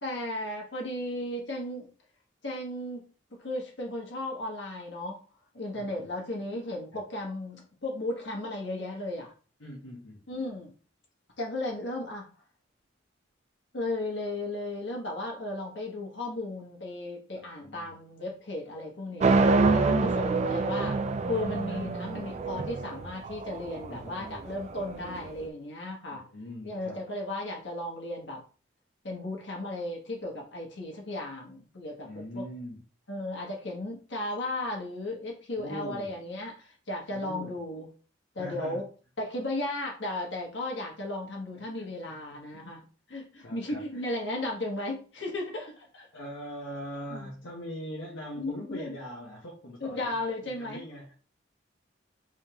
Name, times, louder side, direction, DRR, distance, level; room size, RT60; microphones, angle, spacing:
voice 1, 0.0-1.9 2.4-3.1 3.4-5.2 5.5-9.3 10.3-10.7 11.4-12.3 13.7-19.3 19.7-21.0 21.3-26.2 26.6-28.4 29.0-32.5 33.1-37.9 38.3-38.8 39.2-42.8 43.1-46.1 47.1-47.3 48.4-49.0 49.8-50.8, left 1 dB, 65° left, 1.3 m, -35 dB
voice 2, 9.6-10.2 17.6-18.0 19.8-20.3 21.7-21.9 23.9-24.4 26.1-27.0 32.0-32.8 35.6-36.1 37.1-37.6 38.4-38.8 41.8-42.2 42.5-42.7 43.4-43.8 46.1-50.1 50.4-51.1, equal, 85° left, 1.0 m, -41 dB
sound 1, 19.2-25.3, right 3 dB, 35° right, 0.3 m, -26 dB
3.6 x 3.4 x 2.9 m
head